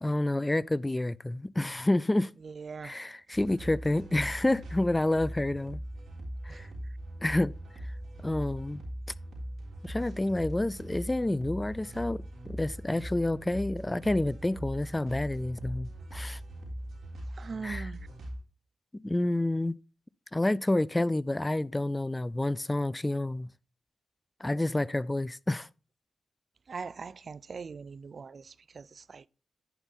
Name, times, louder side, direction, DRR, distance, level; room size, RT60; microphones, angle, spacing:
voice 1, 0.0-2.3 2.8-5.8 6.4-6.7 7.2-7.5 8.2-8.8 9.8-16.4 17.6-17.9 19.0-19.8 20.3-23.5 24.4-25.7, left 1 dB, 20° left, 0.3 m, -29 dB
voice 2, 2.4-3.0 6.5-6.9 17.3-18.1 26.7-29.3, right 5 dB, 55° right, 0.3 m, -42 dB
sound 1, 3.3-18.4, right 1 dB, 70° right, 3.5 m, -40 dB
10.5 x 5.4 x 4.0 m
supercardioid pair, 45°, 0 cm